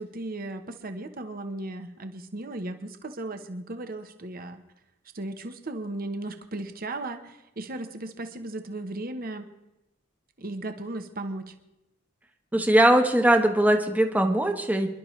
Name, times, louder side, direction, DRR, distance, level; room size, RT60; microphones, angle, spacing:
voice 1, 0.0-4.6 5.1-9.5 10.4-11.5, right 2 dB, 50° right, 7 dB, 1.0 m, -36 dB
voice 2, 12.5-14.9, right 1 dB, 10° right, 4 dB, 1.0 m, -20 dB
26.0 x 11.5 x 3.2 m, 0.92 s
head